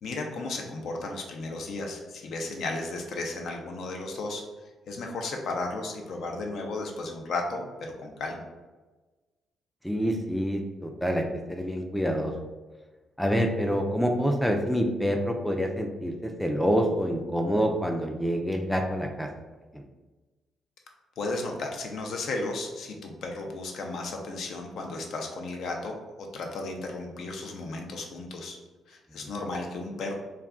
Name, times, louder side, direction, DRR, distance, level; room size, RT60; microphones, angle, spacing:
voice 1, 0.0-4.4 4.9-8.4 21.2-28.6 28.9-30.1, left 2 dB, 70° left, 2 dB, 0.5 m, -34 dB
voice 2, 9.8-12.3 13.2-19.3 19.7-19.8, equal, ahead, 2 dB, 0.3 m, -27 dB
2.3 x 2.2 x 3.5 m, 1.2 s
cardioid pair, 90°, 0 cm